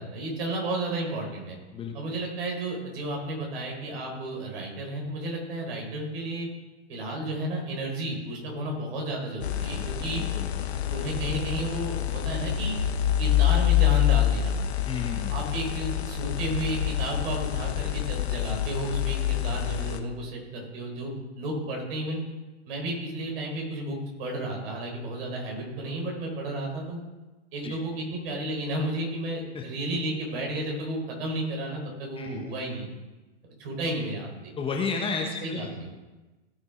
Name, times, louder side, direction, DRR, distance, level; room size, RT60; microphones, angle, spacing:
voice 1, 0.0-1.5 1.9-6.5 6.9-10.2 10.9-12.8 13.2-14.6 15.3-22.2 22.7-27.0 27.5-32.9 33.6-34.5 35.4-35.9, right 1 dB, 55° right, 0 dB, 4.3 m, -32 dB
sound 1, 9.4-20.0, left 11 dB, 70° left, 1.1 m, -26 dB
voice 2, 10.2-10.6 14.9-15.3 27.6-27.8 29.5-29.6 32.2-32.4 34.6-35.9, left 5 dB, 15° left, 2 dB, 1.0 m, -32 dB
17.0 x 6.6 x 3.7 m, 1.1 s
hypercardioid pair, 115°, 34 cm